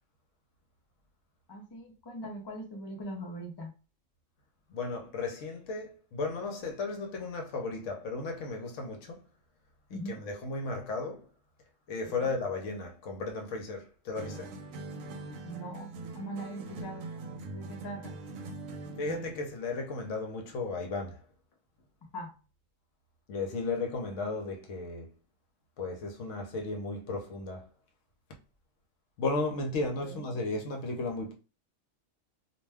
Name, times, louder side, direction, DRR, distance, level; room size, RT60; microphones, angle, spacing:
voice 1, 1.5-3.7 9.9-10.2 15.4-17.1 17.5-18.1 22.1-22.3 30.0-30.2, equal, 35° left, 0.4 m, -41 dB
voice 2, 4.7-9.2 9.9-11.2 11.9-14.6 19.0-21.2 23.3-25.1 25.8-27.7 29.2-31.3, left 3 dB, 70° left, 1.0 m, -35 dB
sound 1, 14.1-19.5, right 3 dB, 75° right, 0.9 m, -42 dB
2.4 x 2.2 x 3.3 m
omnidirectional pair, 1.4 m